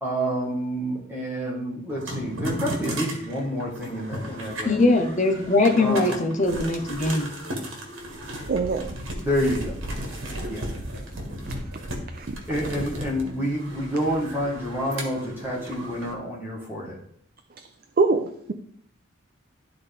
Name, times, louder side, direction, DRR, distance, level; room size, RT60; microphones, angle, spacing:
voice 1, 0.0-4.8 5.8-6.0 9.2-9.7 10.5-10.6 12.5-17.0, equal, 10° right, -4 dB, 1.5 m, -28 dB
sound 1, 1.9-16.1, equal, 80° right, 1.6 m, -35 dB
voice 2, 4.6-7.3, left 2 dB, 35° left, 5 dB, 0.9 m, -21 dB
voice 3, 8.5-8.9 12.1-12.3 18.0-18.5, right 3 dB, 45° right, 6 dB, 0.4 m, -23 dB
12.0 x 4.0 x 3.4 m, 0.64 s
head